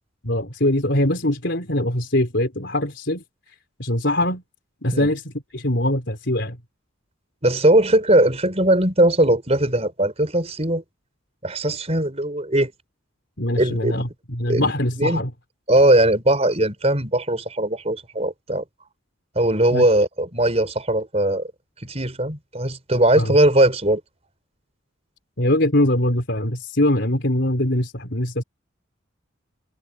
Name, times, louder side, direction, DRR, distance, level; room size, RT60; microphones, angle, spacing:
voice 1, 0.2-3.2 3.8-4.4 4.8-6.6 13.4-15.3 19.7-19.8 23.2-23.4 25.4-28.4, left 1 dB, 60° left, 4.3 m, -22 dB
voice 2, 7.4-10.8 11.4-12.7 13.6-14.1 14.5-14.7 15.0-15.2 15.7-18.6 19.4-21.5 21.8-24.0, right 1 dB, 30° right, 5.3 m, -19 dB
head